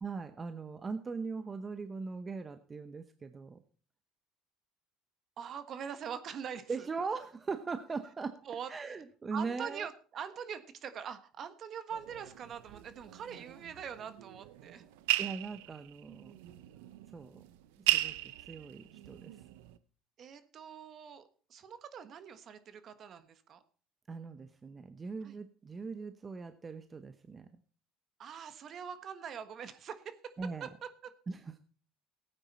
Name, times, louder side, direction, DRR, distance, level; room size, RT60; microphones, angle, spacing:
voice 1, 0.0-3.6 6.7-8.4 8.7-9.9 15.2-16.3 17.1-17.4 17.9-19.4 24.1-27.5 30.4-30.7 31.3-31.6, right 4 dB, 25° right, 9 dB, 0.9 m, -40 dB
voice 2, 5.4-6.9 8.4-8.7 9.3-14.9 20.2-23.6 25.2-25.4 28.2-31.1, right 7 dB, 45° right, 11 dB, 1.4 m, -43 dB
sound 1, 11.9-19.8, right 17 dB, 90° right, 0.7 m, -37 dB
16.5 x 9.0 x 4.3 m, 0.42 s
supercardioid pair, 100°, 0 cm